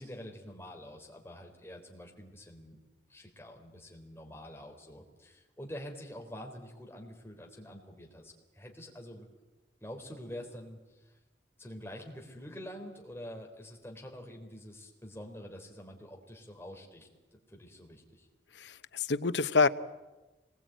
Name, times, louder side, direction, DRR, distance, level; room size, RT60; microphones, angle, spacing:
voice 1, 0.0-2.8 3.1-9.3 9.8-11.2 11.6-17.1 17.5-18.3, equal, 15° left, 1 dB, 3.9 m, -46 dB
voice 2, 18.5-19.7, left 4 dB, 80° left, 14 dB, 0.9 m, -27 dB
25.5 x 21.0 x 9.2 m, 1.1 s
head